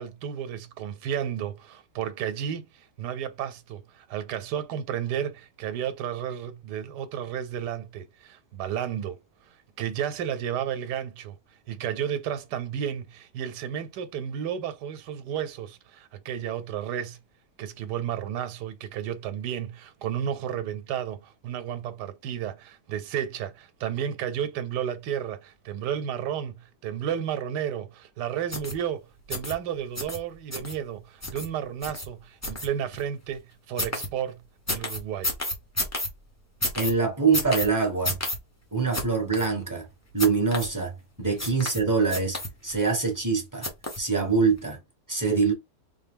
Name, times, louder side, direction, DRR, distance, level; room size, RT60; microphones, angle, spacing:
voice 1, 0.0-9.2 9.8-11.4 11.7-17.2 17.6-34.4 34.7-35.3, right 9 dB, 85° right, 1.2 m, -32 dB
sound 1, 28.5-28.7 29.3-29.5 30.0-30.2 30.5-30.7 31.2-31.5 31.8-32.0 32.4-33.0 33.8-34.1 34.7-36.1 36.6-36.9 37.3-37.7 38.0-38.4 38.9-39.0 39.3-39.5 40.2-40.7 41.4-41.8 42.1-42.7 43.6-44.1 44.5-44.6, left 1 dB, 25° left, 0.3 m, -30 dB
voice 2, 36.8-38.2 38.7-39.9 40.1-42.4 42.6-43.7 44.0-44.8 45.1-45.5, right 5 dB, 15° right, 0.9 m, -24 dB
3.9 x 2.2 x 3.5 m
omnidirectional pair, 1.8 m